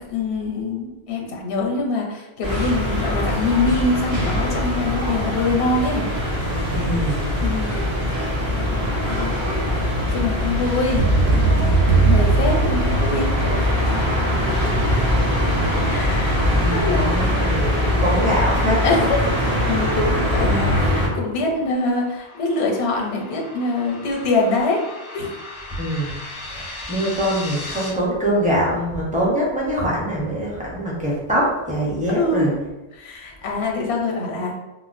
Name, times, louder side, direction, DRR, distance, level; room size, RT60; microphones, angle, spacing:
voice 1, 0.1-6.1 7.4-7.8 8.7-9.4 10.1-11.6 12.0-13.7 14.6-14.8 15.8-16.4 16.7-17.1 18.8-24.8 25.1-25.3 32.1-32.6 32.9-34.6, left 3 dB, 85° left, 0 dB, 0.9 m, -24 dB
sound 1, 2.4-21.1, left 1 dB, 60° right, 1.3 m, -22 dB
voice 2, 6.7-7.2 16.4-19.1 25.8-26.1 26.5-32.5 33.4-33.7, equal, 10° right, -5 dB, 0.6 m, -23 dB
sound 2, 11.0-13.5, right 4 dB, 75° right, 0.9 m, -18 dB
sound 3, 21.1-27.9, left 2 dB, 40° left, 0.5 m, -38 dB
3.6 x 2.1 x 2.5 m, 1.0 s
omnidirectional pair, 1.1 m